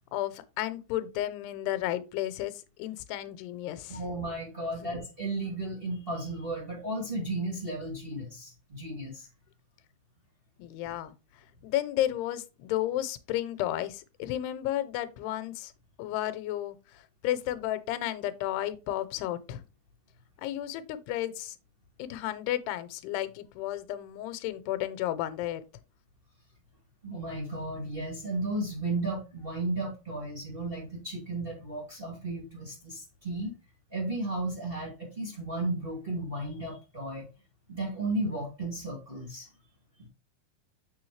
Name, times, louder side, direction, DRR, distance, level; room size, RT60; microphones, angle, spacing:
voice 1, 0.1-2.5 2.8-4.0 4.8-4.9 10.6-11.2 11.6-15.7 16.0-19.6 20.4-21.6 22.0-25.6, left 13 dB, 85° left, 2.8 m, -32 dB
voice 2, 3.9-9.3 27.0-33.5 33.9-37.3 37.7-39.5 40.0-40.1, right 2 dB, 20° right, 1.7 m, -34 dB
7.0 x 6.6 x 3.2 m
omnidirectional pair, 4.7 m